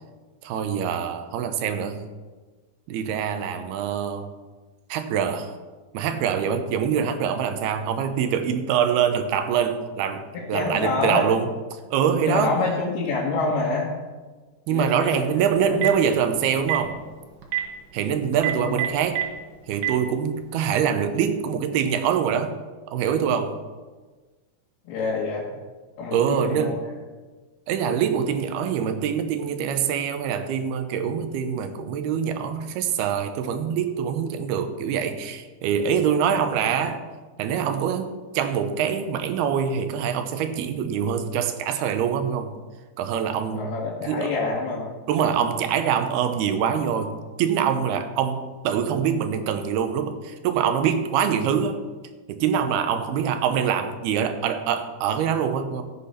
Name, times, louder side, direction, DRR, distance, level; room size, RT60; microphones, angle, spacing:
voice 1, 0.4-2.1 2.9-4.3 4.9-5.5 5.9-12.6 14.7-17.0 17.9-19.2 19.7-22.6 22.9-23.6 26.1-26.8 27.7-37.0 37.4-42.5 43.0-43.7 44.1-44.3 45.1-51.8 52.3-55.8, right 8 dB, 85° right, 8 dB, 2.9 m, -24 dB
voice 2, 10.3-11.3 12.3-14.0 14.7-15.3 15.7-15.8 18.6-18.8 24.9-25.5 26.0-26.9 36.3-36.5 43.5-44.9, left 3 dB, 85° left, -4 dB, 3.5 m, -27 dB
Telephone, 15.6-16.0 16.6-16.8 17.4-17.6 18.3-19.2 19.7-19.9, right 13 dB, 65° right, 2.9 m, -24 dB
13.5 x 8.5 x 5.7 m, 1.3 s
omnidirectional pair, 4.4 m